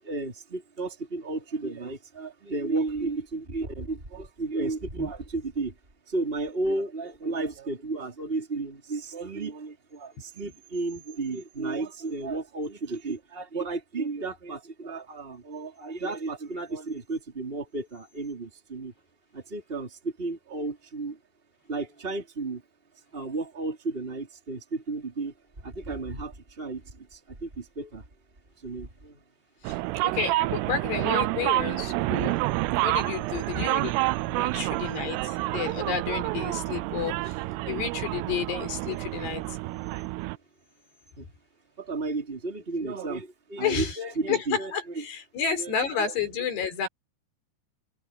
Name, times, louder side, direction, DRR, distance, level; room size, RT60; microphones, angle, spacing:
voice 1, 0.0-5.7 6.1-18.9 19.3-21.2 21.7-22.6 23.1-28.0 28.6-29.2 34.5-34.6 41.2-41.3 41.8-45.0 45.6-45.7 46.6-46.9, right 3 dB, 15° right, 3.6 m, -33 dB
voice 2, 29.6-37.4 37.7-39.6 43.6-44.0 44.3-46.9, left 7 dB, 70° left, 6.5 m, -31 dB
sound 1, 29.7-40.4, right 19 dB, 85° right, 2.5 m, -28 dB
omnidirectional pair, 5.0 m